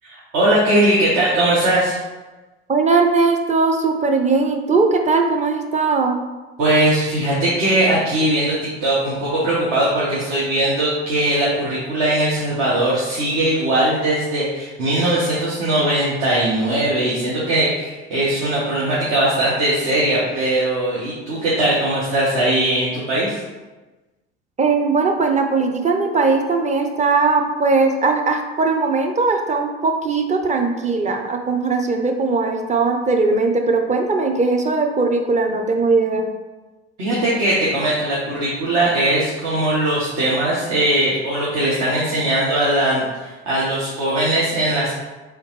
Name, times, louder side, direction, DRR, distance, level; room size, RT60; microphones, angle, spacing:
voice 1, 0.0-2.0 6.6-23.4 37.0-44.9, right 1 dB, 60° right, -8 dB, 1.3 m, -20 dB
voice 2, 2.7-6.2 24.6-36.3, right 3 dB, 20° right, 4 dB, 0.6 m, -19 dB
3.5 x 3.5 x 3.1 m, 1.2 s
hypercardioid pair, 65°, 33 cm